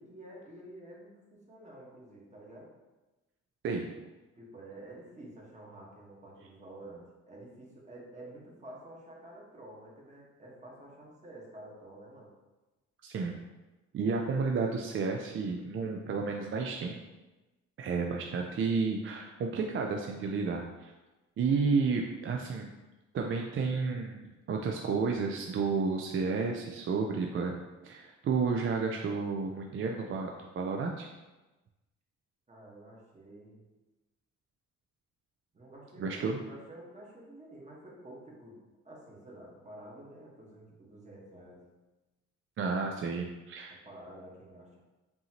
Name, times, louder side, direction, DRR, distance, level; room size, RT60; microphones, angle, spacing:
voice 1, 0.0-2.7 4.3-12.3 32.5-33.6 35.5-38.6 38.8-41.6 43.7-44.8, right 1 dB, 25° right, -3 dB, 1.4 m, -50 dB
voice 2, 13.0-13.4 13.9-17.0 17.8-20.9 21.4-22.7 23.1-31.1 36.0-36.4 42.6-43.7, right 4 dB, 45° right, 1 dB, 0.4 m, -31 dB
5.4 x 2.8 x 2.9 m, 1.1 s
cardioid pair, 90°, 30 cm